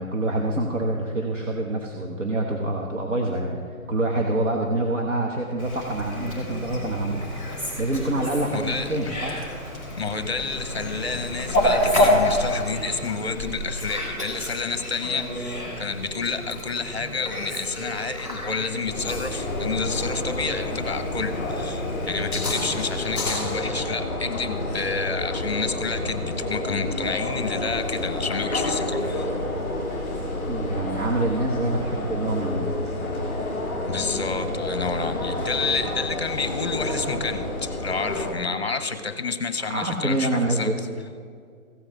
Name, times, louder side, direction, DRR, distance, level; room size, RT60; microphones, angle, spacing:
voice 1, 0.0-3.6 3.9-7.2 7.8-9.4 30.5-32.7 39.7-40.8, right 2 dB, 55° right, 0 dB, 1.4 m, -26 dB
Fowl, 5.6-23.6, left 1 dB, 25° right, 3.1 m, -29 dB
voice 2, 8.5-9.2 9.9-29.4 33.9-40.7, left 4 dB, 45° left, 11 dB, 0.8 m, -29 dB
sound 1, 18.9-38.3, left 2 dB, 5° right, 1.6 m, -29 dB
15.5 x 5.6 x 7.4 m, 2.1 s
hypercardioid pair, 180°, 44 cm